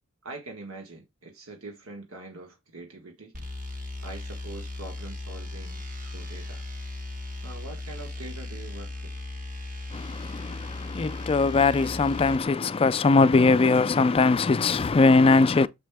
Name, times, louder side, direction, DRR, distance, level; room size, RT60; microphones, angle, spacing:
voice 1, 0.2-3.3 4.0-6.6 7.4-9.3, right 2 dB, 90° right, 1.5 m, -43 dB
sound 1, 3.3-12.4, left 2 dB, 40° right, 1.3 m, -37 dB
voice 2, 9.9-15.7, left 3 dB, 25° left, 0.3 m, -21 dB
7.3 x 4.2 x 3.5 m
head